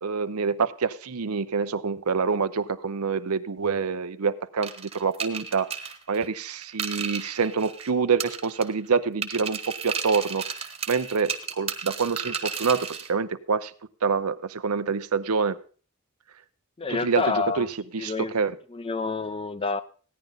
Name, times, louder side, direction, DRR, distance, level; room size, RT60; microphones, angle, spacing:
voice 1, 0.0-5.7 6.1-10.4 10.9-13.7 14.0-15.6 17.0-17.7 17.9-18.5, right 5 dB, 85° right, 13 dB, 0.7 m, -26 dB
sound 1, 4.6-7.9 8.2-8.9 9.2-13.1, right 6 dB, 30° right, 1.1 m, -33 dB
voice 2, 16.8-17.7 18.0-18.3 18.7-19.8, left 4 dB, 25° left, 12 dB, 0.6 m, -28 dB
15.5 x 10.5 x 3.9 m, 0.39 s
head